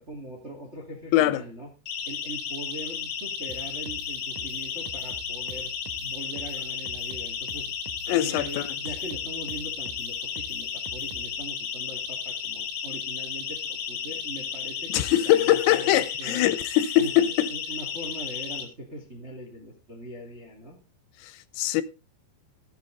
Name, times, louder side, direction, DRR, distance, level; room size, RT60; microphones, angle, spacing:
voice 1, 0.0-1.7 2.0-5.7 6.0-7.7 8.1-16.4 17.0-20.8, right 1 dB, 65° right, 0.6 m, -41 dB
voice 2, 1.1-1.4 8.1-8.8 14.9-17.5 21.2-21.8, left 13 dB, 90° left, 3.5 m, -22 dB
Siren, 1.9-18.6, left 7 dB, 70° left, 4.3 m, -34 dB
sound 1, 3.5-11.4, right 5 dB, 80° right, 1.8 m, -45 dB
14.5 x 9.5 x 3.8 m
omnidirectional pair, 5.7 m